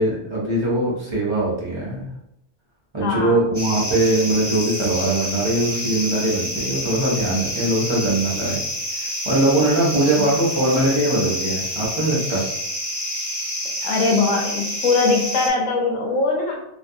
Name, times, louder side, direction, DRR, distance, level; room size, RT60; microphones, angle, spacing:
voice 1, 0.0-2.0 2.9-8.6 8.9-12.4, right 1 dB, 35° right, -5 dB, 0.4 m, -21 dB
voice 2, 3.0-3.4 10.2-10.4 13.8-16.6, left 3 dB, 70° left, 1 dB, 0.9 m, -21 dB
sound 1, 3.5-15.5, left 1 dB, 25° left, 0.8 m, -28 dB
2.5 x 2.3 x 2.6 m, 0.79 s
omnidirectional pair, 1.5 m